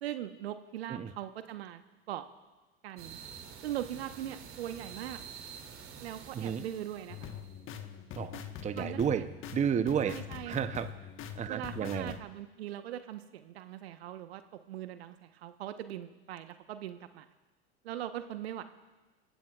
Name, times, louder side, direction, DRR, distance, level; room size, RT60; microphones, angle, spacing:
voice 1, 0.0-2.3 2.8-3.2 3.6-5.2 6.0-7.3 8.7-9.3 10.0-10.6 11.5-14.4 14.7-17.3 17.8-18.6, right 12 dB, 75° right, 9 dB, 1.2 m, -40 dB
sound 1, 3.0-7.6, right 7 dB, 45° right, 2.8 m, -48 dB
sound 2, 7.1-12.2, left 8 dB, 40° left, 1.4 m, -43 dB
voice 2, 8.2-9.3 9.5-10.2 10.5-10.9 11.4-12.2, right 8 dB, 20° right, 10 dB, 0.8 m, -31 dB
26.5 x 15.5 x 2.4 m, 1.2 s
hypercardioid pair, 95°, 32 cm